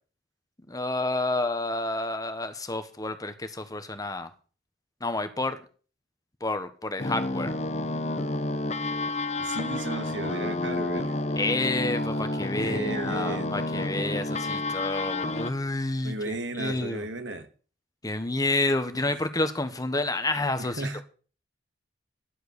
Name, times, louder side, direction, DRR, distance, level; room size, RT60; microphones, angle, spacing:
voice 1, 0.7-4.3 5.0-5.6 6.4-7.5 11.4-17.0 18.0-21.0, left 2 dB, 20° left, 1.3 m, -29 dB
sound 1, 7.0-15.5, left 2 dB, 35° left, 1.0 m, -30 dB
voice 2, 9.4-11.2 12.6-13.6 16.0-17.5 18.9-19.0 20.6-21.0, right 2 dB, 70° right, 2.2 m, -34 dB
11.5 x 8.0 x 8.3 m
head